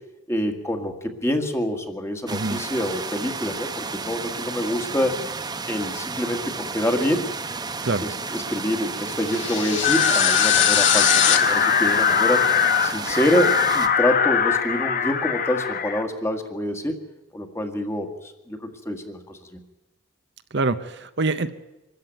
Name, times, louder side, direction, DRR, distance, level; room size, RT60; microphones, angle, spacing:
voice 1, 0.3-5.2 5.7-7.3 8.0-12.5 12.8-17.0 17.3-19.6, left 1 dB, 15° left, 6 dB, 1.8 m, -26 dB
sound 1, 2.3-13.9, right 4 dB, 20° right, 0.9 m, -32 dB
sound 2, 9.3-11.4, left 10 dB, 60° left, 1.9 m, -22 dB
sound 3, 9.8-16.0, left 7 dB, 40° left, 1.1 m, -21 dB
voice 2, 20.5-21.5, right 3 dB, 55° right, 10 dB, 0.8 m, -25 dB
25.0 x 13.5 x 9.2 m, 1.0 s
head